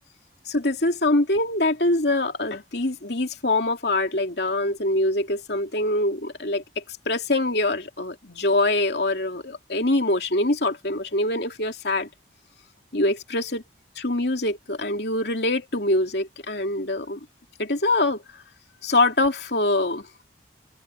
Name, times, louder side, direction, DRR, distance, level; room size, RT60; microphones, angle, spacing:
voice 1, 0.5-12.1 12.9-13.6 14.0-17.2 17.6-18.2 18.8-20.1, left 2 dB, 65° left, 2.7 m, -24 dB
head